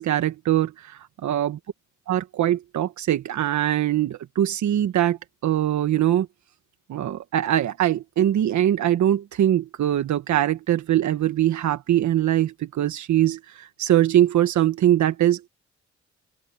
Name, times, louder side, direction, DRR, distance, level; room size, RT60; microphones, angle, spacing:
voice 1, 0.0-1.6 2.1-6.3 6.9-15.5, right 12 dB, 75° right, 1.5 m, -22 dB
open air
cardioid pair, 65°, 29 cm